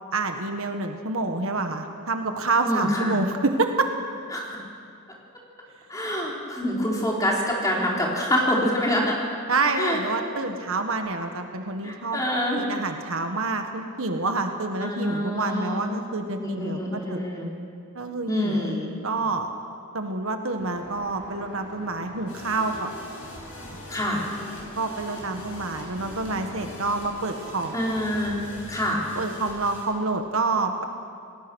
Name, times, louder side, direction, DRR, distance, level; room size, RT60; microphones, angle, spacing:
voice 1, 0.1-3.9 9.5-12.2 12.6-17.2 17.9-18.8 19.0-19.5 19.9-22.9 24.8-27.8 29.2-30.8, right 3 dB, 60° right, 5 dB, 1.6 m, -27 dB
voice 2, 2.6-3.2 4.3-4.6 5.9-9.2 9.7-10.3 11.8-12.7 14.8-15.8 16.4-17.5 18.3-18.9 23.9-24.2 27.7-28.4 28.7-29.0, equal, 15° left, -3 dB, 4.2 m, -26 dB
Aircraft, 20.6-28.3, left 1 dB, 80° left, 6.4 m, -45 dB
sound 1, 22.3-29.8, left 1 dB, 60° left, 7.5 m, -43 dB
28.5 x 19.0 x 6.3 m, 2.4 s
head